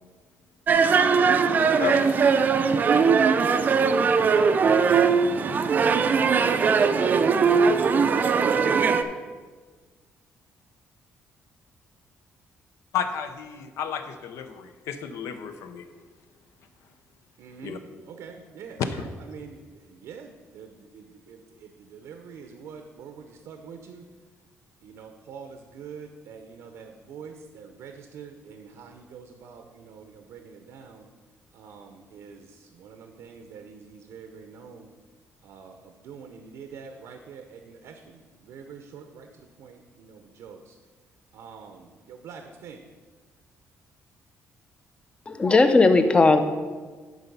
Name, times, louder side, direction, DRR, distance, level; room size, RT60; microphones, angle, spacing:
sound 1, 0.7-9.0, right 5 dB, 35° right, 0.4 m, -20 dB
voice 1, 1.1-1.9 17.4-19.6 19.9-24.0 24.8-31.1 31.5-34.9 35.4-40.7 41.3-42.8, right 6 dB, 80° right, 5 dB, 0.7 m, -45 dB
voice 2, 1.8-2.3 12.9-15.8 17.6-17.8 18.8-19.1, left 7 dB, 75° left, 9 dB, 0.7 m, -31 dB
voice 3, 45.3-46.4, left 3 dB, 20° left, 8 dB, 0.6 m, -17 dB
11.0 x 4.1 x 5.4 m, 1.4 s
cardioid pair, 145°, 5 cm